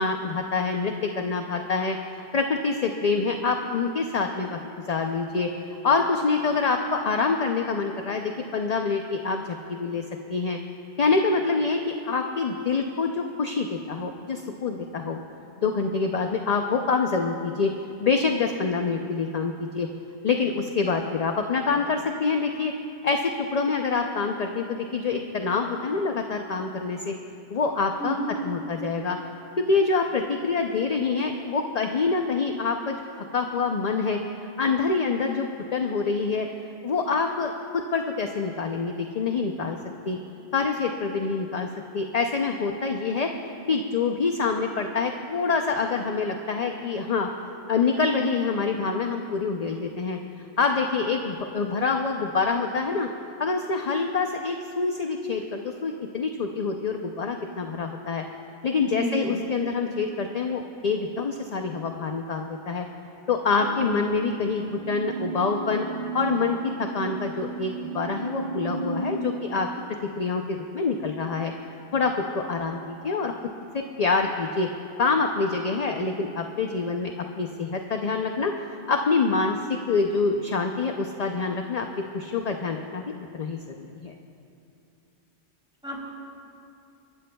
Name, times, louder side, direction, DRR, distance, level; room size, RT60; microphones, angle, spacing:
voice 1, 0.0-4.6 4.9-5.5 5.8-9.4 9.7-10.0 10.3-10.6 11.0-15.2 15.6-17.7 18.0-19.9 20.2-22.7 23.0-27.1 27.5-28.1 28.4-29.2 29.6-33.0 33.3-36.5 36.8-39.8 40.1-40.2 40.5-41.7 41.9-43.3 43.7-47.3 47.7-50.2 50.6-53.1 53.4-58.2 58.6-62.9 63.3-65.8 66.1-69.7 70.2-71.5 71.9-73.3 73.7-74.7 75.0-78.5 78.9-81.9 82.1-84.1, left 4 dB, 45° left, 4 dB, 0.6 m, -26 dB
voice 2, 28.0-28.3 58.8-59.4 85.8-86.0, equal, 5° right, -4 dB, 3.4 m, -30 dB
sound 1, 63.6-69.2, right 4 dB, 55° right, 1.1 m, -33 dB
29.5 x 13.0 x 2.3 m, 2.7 s
omnidirectional pair, 1.1 m